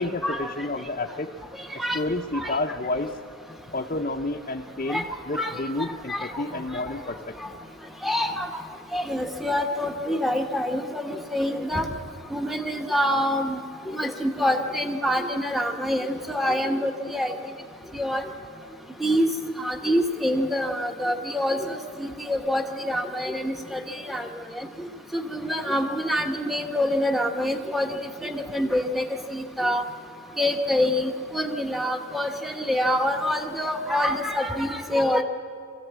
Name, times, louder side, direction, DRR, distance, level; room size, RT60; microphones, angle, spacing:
voice 1, 0.0-1.3 1.7-3.2 3.7-7.6, left 2 dB, 35° left, 0 dB, 0.8 m, -30 dB
voice 2, 8.0-8.5 8.9-11.9 12.3-13.6 13.9-17.3 17.9-18.2 19.0-19.3 19.6-24.3 24.6-24.9 25.1-27.9 28.2-29.1 29.3-29.8 30.4-35.2, left 1 dB, ahead, 3 dB, 1.1 m, -26 dB
22.5 x 15.0 x 8.2 m, 2.3 s
head